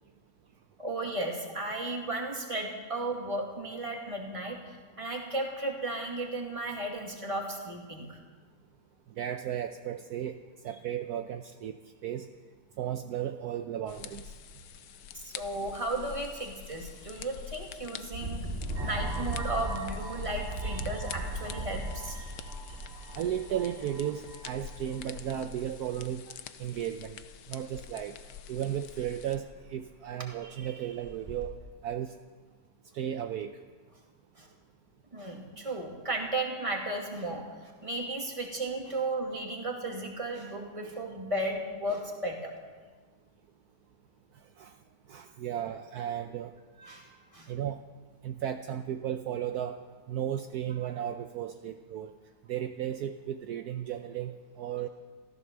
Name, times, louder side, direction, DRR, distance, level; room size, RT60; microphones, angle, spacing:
voice 1, 0.8-4.6 5.0-8.2 15.1-18.5 18.8-22.2 34.4-34.5 35.1-42.5 46.8-47.5, right 2 dB, 20° right, 0 dB, 2.4 m, -35 dB
voice 2, 9.2-10.4 10.6-12.3 12.8-14.3 20.6-20.8 22.1-22.8 23.1-27.2 27.5-28.1 28.5-31.6 31.8-32.1 32.9-33.5 38.9-39.0 44.6-44.7 45.1-46.5 47.5-47.8 48.2-49.8 50.1-52.2 52.5-54.9, right 10 dB, 70° right, 7 dB, 1.1 m, -35 dB
sound 1, 13.9-29.4, left 9 dB, 80° left, 1.3 m, -46 dB
Engine, 16.0-16.2 16.7-16.8 18.0-23.8 24.7-24.8 25.2-26.0 27.8-27.9 28.3-28.4 28.8-28.9 29.2-29.7 30.3-30.4 31.0-31.5, right 1 dB, 40° right, 2.8 m, -38 dB
sound 2, 18.7-25.5, right 2 dB, 85° right, 3.5 m, -43 dB
15.0 x 14.0 x 6.9 m, 1.4 s
omnidirectional pair, 1.8 m